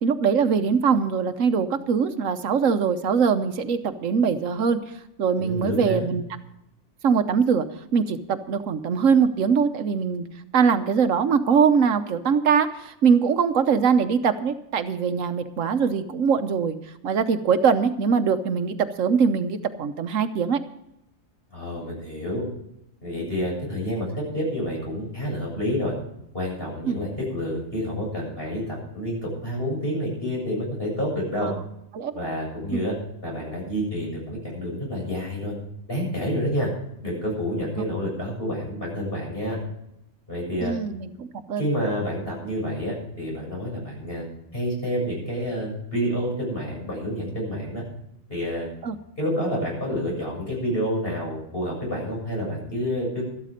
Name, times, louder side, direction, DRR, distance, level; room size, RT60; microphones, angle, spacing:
voice 1, 0.0-4.9 5.2-6.2 7.0-7.7 7.9-10.2 10.5-16.8 17.0-20.6 26.9-27.0 31.4-31.6 31.9-32.1 32.7-32.9 40.6-41.7 48.8-49.0, right 6 dB, 75° right, 9 dB, 1.3 m, -22 dB
voice 2, 5.4-6.1 21.5-22.4 23.0-25.9 26.3-31.5 32.1-32.9 33.2-35.5 35.9-36.7 37.0-39.6 40.3-40.7 41.6-44.2 44.5-47.8 48.3-48.7 49.2-53.2, equal, 45° left, -2 dB, 7.6 m, -28 dB
13.5 x 12.5 x 5.1 m, 0.81 s
omnidirectional pair, 1.4 m